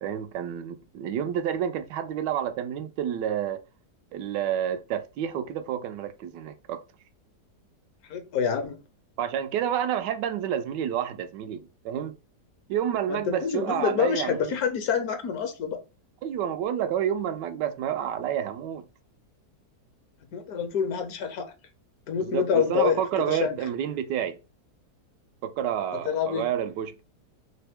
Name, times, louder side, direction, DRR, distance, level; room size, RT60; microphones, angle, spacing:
voice 1, 0.0-3.6 4.1-6.8 9.2-12.2 12.7-14.5 16.2-18.9 22.2-24.4 25.4-27.0, right 9 dB, 85° right, 1.2 m, -29 dB
voice 2, 8.1-8.8 13.1-15.8 20.3-21.5 22.1-23.6 26.0-26.4, left 7 dB, 65° left, 1.0 m, -27 dB
3.3 x 2.9 x 3.4 m
omnidirectional pair, 1.8 m